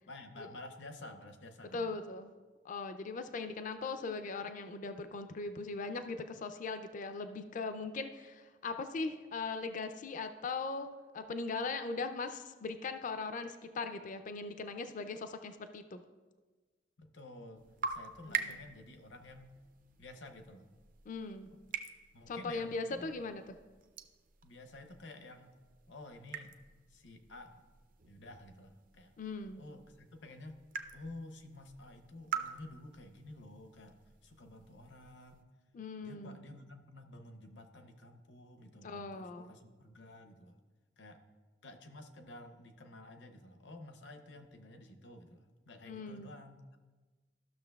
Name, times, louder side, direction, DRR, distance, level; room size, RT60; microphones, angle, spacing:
voice 1, 0.1-2.0 17.0-19.6 20.0-20.7 21.5-21.6 22.1-23.1 24.4-25.5 25.9-26.6 26.9-27.6 28.0-29.1 29.6-30.6 30.9-35.5 36.0-40.6 41.0-41.2 41.6-46.8, left 2 dB, 70° left, 6 dB, 0.7 m, -51 dB
voice 2, 1.7-2.3 2.6-16.0 18.3-18.6 21.1-21.5 22.3-23.4 29.2-29.6 35.7-36.4 38.8-39.5 45.9-46.3, left 3 dB, 45° left, 9 dB, 0.4 m, -39 dB
sound 1, 17.6-35.4, right 6 dB, 45° right, 0.5 m, -46 dB
13.5 x 6.3 x 2.3 m, 1.3 s
head